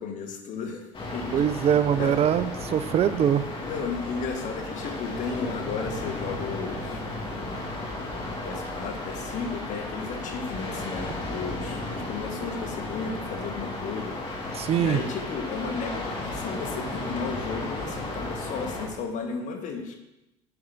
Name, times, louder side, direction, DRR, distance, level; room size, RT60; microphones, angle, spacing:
voice 1, 0.0-1.7 2.0-2.2 3.6-7.0 7.4-14.2 14.7-20.0, left 5 dB, 60° left, 5 dB, 1.5 m, -34 dB
sound 1, 0.9-18.9, left 2 dB, 35° left, 2.7 m, -34 dB
voice 2, 1.3-3.4 14.6-15.0, right 9 dB, 45° right, 14 dB, 0.6 m, -23 dB
7.9 x 5.0 x 7.0 m, 0.96 s
supercardioid pair, 80°, 14 cm